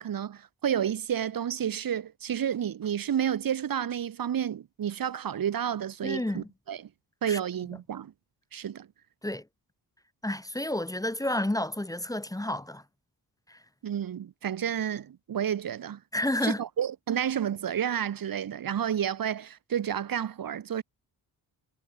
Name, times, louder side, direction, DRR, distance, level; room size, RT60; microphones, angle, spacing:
voice 1, 0.0-6.9 7.2-8.1 8.5-8.9 13.8-16.0 16.4-20.8, right 9 dB, 60° right, 1.3 m, -30 dB
voice 2, 6.0-6.5 7.2-7.4 9.2-9.4 10.2-12.8 13.5-13.6 16.1-16.6, left 1 dB, 10° left, 1.2 m, -30 dB
cardioid pair, 100°, 38 cm